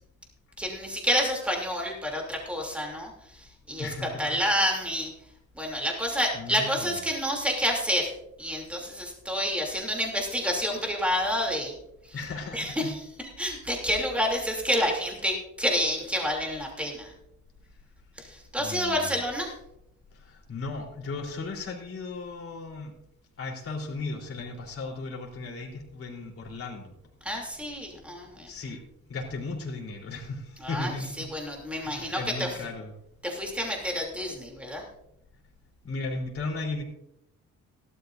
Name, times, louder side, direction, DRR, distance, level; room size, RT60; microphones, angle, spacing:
voice 1, 0.6-5.1 5.5-8.1 8.4-11.7 12.0-12.2 12.5-17.1 18.2-19.5 27.2-28.5 30.6-32.5 33.2-34.8, equal, 5° right, 0 dB, 3.0 m, -29 dB
voice 2, 3.8-4.2 6.3-7.0 12.1-12.9 14.3-14.5 18.6-19.2 20.1-22.9 23.4-26.9 28.5-28.8 29.1-31.3 31.8-32.9 35.8-36.8, left 3 dB, 45° left, -1 dB, 3.7 m, -36 dB
17.0 x 12.5 x 2.6 m, 0.81 s
cardioid pair, 115°, 31 cm